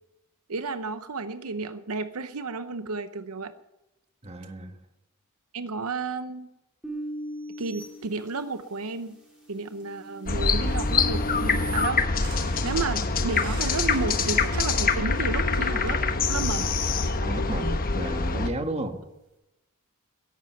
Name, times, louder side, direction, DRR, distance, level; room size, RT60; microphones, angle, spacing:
voice 1, 0.5-3.5 5.5-6.5 7.6-9.2 9.5-12.0 12.6-16.0 16.3-16.7, right 4 dB, 75° right, 11 dB, 0.8 m, -32 dB
voice 2, 4.2-4.8 17.2-19.0, right 1 dB, 30° right, 6 dB, 1.5 m, -33 dB
sound 1, 6.8-8.8 9.3-11.9, equal, 5° right, 3.9 m, -37 dB
sound 2, 10.3-18.5, left 4 dB, 40° left, 1.1 m, -25 dB
sound 3, 12.2-17.9 18.9-19.0, right 5 dB, 60° right, 5.9 m, -48 dB
13.5 x 11.0 x 9.2 m, 0.96 s
head